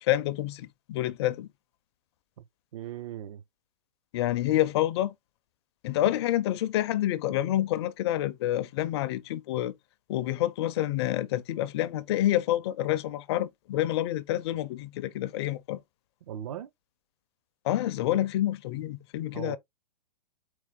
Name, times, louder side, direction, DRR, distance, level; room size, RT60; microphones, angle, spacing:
voice 1, 0.0-1.5 4.1-5.1 5.8-9.7 10.1-15.8 17.6-19.6, left 13 dB, 40° left, 0.4 m, -28 dB
voice 2, 2.7-3.4 16.2-16.7 19.3-19.6, right 11 dB, 55° right, 0.6 m, -38 dB
4.5 x 2.3 x 3.7 m
hypercardioid pair, 120°, 21 cm